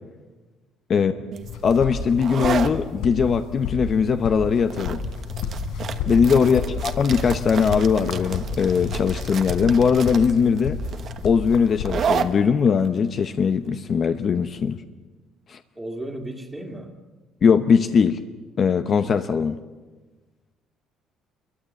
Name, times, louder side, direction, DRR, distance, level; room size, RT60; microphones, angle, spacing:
voice 1, 0.9-1.2 6.4-6.8 15.7-17.0, right 1 dB, 10° right, 4 dB, 2.4 m, -36 dB
sound 1, 1.3-14.7, right 7 dB, 35° right, 1.3 m, -32 dB
sound 2, 1.4-12.3, left 4 dB, 80° left, 3.8 m, -31 dB
voice 2, 1.6-5.0 6.1-10.8 11.2-14.8 15.5-15.6 17.4-18.2 18.6-19.6, left 6 dB, 30° left, 8 dB, 0.8 m, -20 dB
28.5 x 22.5 x 8.4 m, 1.3 s
cardioid pair, 175°, 0 cm